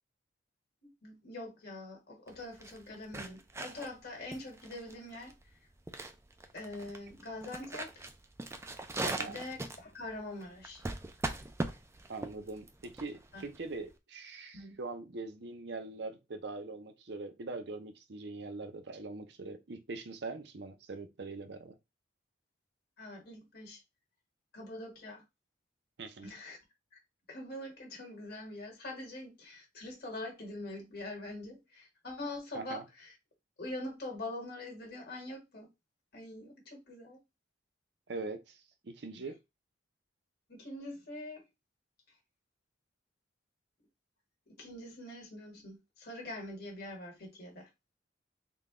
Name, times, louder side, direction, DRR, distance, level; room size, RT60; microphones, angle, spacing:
voice 1, 0.8-5.4 6.5-8.1 9.2-10.8 13.3-13.4 14.5-14.8 23.0-23.8 24.5-25.2 26.2-26.6 27.3-33.1 33.6-35.7 36.1-37.2 40.5-41.5 44.5-47.7, left 1 dB, 50° left, 1.5 m, -44 dB
sound 1, 2.3-13.9, right 2 dB, 15° right, 0.3 m, -41 dB
voice 2, 9.0-9.4 12.1-21.8 26.0-26.3 32.5-32.8 38.1-39.4, right 3 dB, 60° right, 0.6 m, -42 dB
3.8 x 2.3 x 3.6 m
head